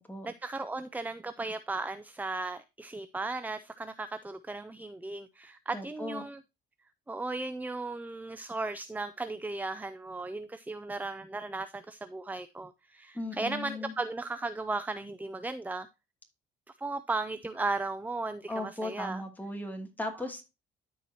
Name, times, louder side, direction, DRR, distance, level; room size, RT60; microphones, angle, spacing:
voice 1, 0.2-6.4 7.1-15.9 16.7-19.2, right 3 dB, 10° right, 0.5 m, -36 dB
voice 2, 5.7-6.2 13.1-13.9 18.5-20.4, left 1 dB, 10° left, 2.6 m, -37 dB
13.0 x 4.7 x 2.8 m
cardioid pair, 90°, 20 cm